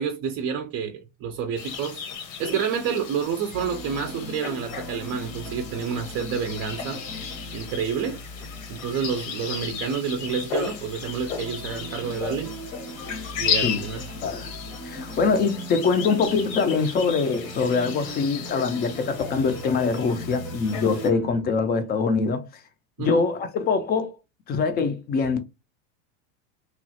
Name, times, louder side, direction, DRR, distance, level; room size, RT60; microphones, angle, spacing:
voice 1, 0.0-7.0 7.5-8.2 8.7-12.6 13.4-14.0 23.0-23.2, right 7 dB, 35° right, 0.5 m, -29 dB
sound 1, 1.6-21.1, left 7 dB, 85° left, 0.9 m, -35 dB
sound 2, 3.5-21.4, equal, 10° right, 0.8 m, -40 dB
voice 2, 14.8-22.4 23.0-24.1 24.5-25.4, left 4 dB, 25° left, 0.4 m, -23 dB
2.9 x 2.3 x 2.7 m
supercardioid pair, 125°, 39 cm